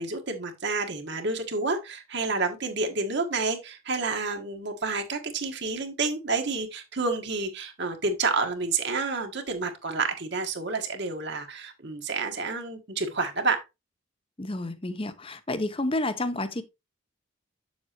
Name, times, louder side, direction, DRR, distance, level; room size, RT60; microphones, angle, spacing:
voice 1, 0.0-13.6, right 3 dB, 55° right, 1.5 m, -29 dB
voice 2, 14.4-16.6, left 2 dB, 25° left, 0.8 m, -30 dB
7.8 x 7.2 x 2.9 m
head